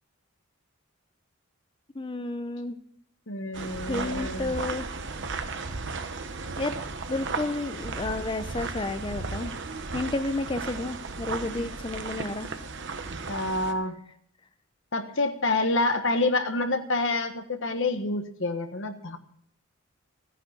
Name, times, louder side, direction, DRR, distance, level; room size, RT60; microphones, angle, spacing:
voice 1, 2.0-2.8 3.9-4.9 6.6-6.7 7.1-9.5 9.9-12.5, left 2 dB, 25° left, 10 dB, 0.6 m, -31 dB
voice 2, 3.3-4.6 13.3-13.9 14.9-19.2, left 2 dB, 65° left, 7 dB, 1.3 m, -27 dB
sound 1, 3.5-13.7, right 4 dB, 60° right, 1.1 m, -35 dB
14.0 x 10.0 x 5.8 m, 0.65 s
head